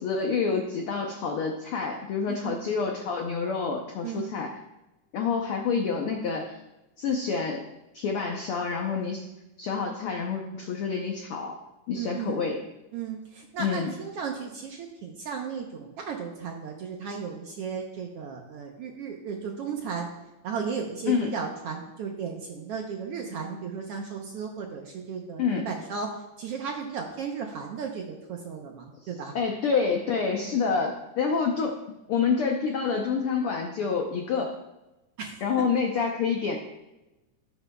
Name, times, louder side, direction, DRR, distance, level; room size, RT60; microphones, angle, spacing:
voice 1, 0.0-4.5 5.1-6.6 7.0-7.6 7.9-9.3 9.6-11.6 11.9-12.6 13.6-13.9 21.1-21.4 25.4-25.7 29.0-31.8 32.1-34.5 35.4-36.6, left 5 dB, 75° left, 2 dB, 1.2 m, -28 dB
voice 2, 2.3-2.6 4.0-4.3 11.9-12.5 12.9-20.1 20.4-26.1 26.4-29.3 35.2-35.4, right 6 dB, 70° right, 2 dB, 1.5 m, -35 dB
16.5 x 8.2 x 2.3 m, 1.0 s
omnidirectional pair, 3.5 m